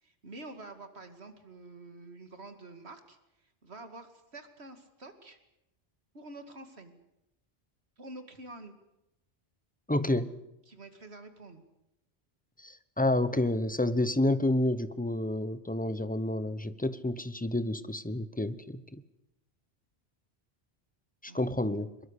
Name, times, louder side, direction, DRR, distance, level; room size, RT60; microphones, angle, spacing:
voice 1, 0.0-5.4 6.1-7.0 8.0-8.7 10.7-11.6 21.3-21.8, right 2 dB, 80° right, 8 dB, 2.7 m, -48 dB
voice 2, 9.9-10.3 12.6-19.0 21.2-21.9, left 1 dB, 10° left, 14 dB, 0.9 m, -29 dB
22.0 x 22.0 x 8.2 m, 0.90 s
omnidirectional pair, 1.1 m